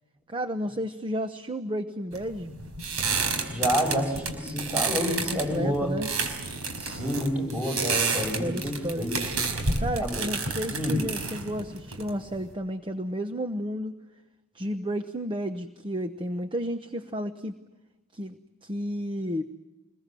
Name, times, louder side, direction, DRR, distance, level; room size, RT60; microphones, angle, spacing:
voice 1, 0.3-2.5 5.3-6.1 8.2-9.1 9.8-13.9 14.5-17.5 18.1-19.4, equal, 20° right, 8 dB, 0.9 m, -32 dB
sound 1, 2.1-12.5, right 4 dB, 75° right, 4.9 m, -30 dB
voice 2, 3.5-5.9 6.8-9.2 10.0-10.2 10.7-11.0, equal, 5° right, 3 dB, 6.2 m, -28 dB
26.5 x 21.5 x 7.7 m, 1.1 s
head